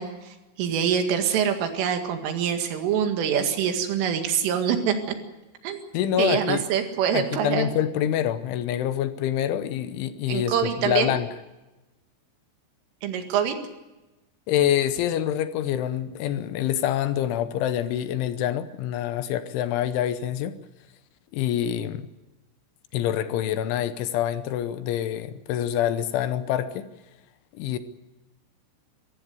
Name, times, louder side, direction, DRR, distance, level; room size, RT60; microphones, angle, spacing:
voice 1, 0.0-4.9 5.6-5.8 6.2-7.7 10.3-11.2 13.0-13.6, right 8 dB, 75° right, 6 dB, 4.4 m, -25 dB
voice 2, 5.9-6.7 7.1-11.3 14.5-20.6 21.3-22.1 22.9-26.9 27.5-27.8, left 11 dB, 75° left, 12 dB, 3.1 m, -26 dB
23.0 x 15.0 x 9.4 m, 1.1 s
omnidirectional pair, 5.9 m